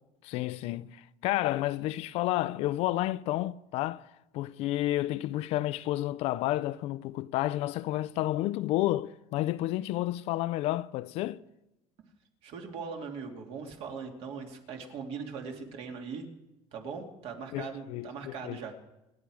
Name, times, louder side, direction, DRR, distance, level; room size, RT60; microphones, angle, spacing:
voice 1, 0.2-4.0 4.3-11.4 17.5-18.6, left 15 dB, 55° left, 0.5 m, -31 dB
voice 2, 12.4-16.3 16.7-18.7, right 5 dB, 50° right, 2.6 m, -40 dB
27.5 x 11.0 x 4.9 m
cardioid pair, 170°, 13 cm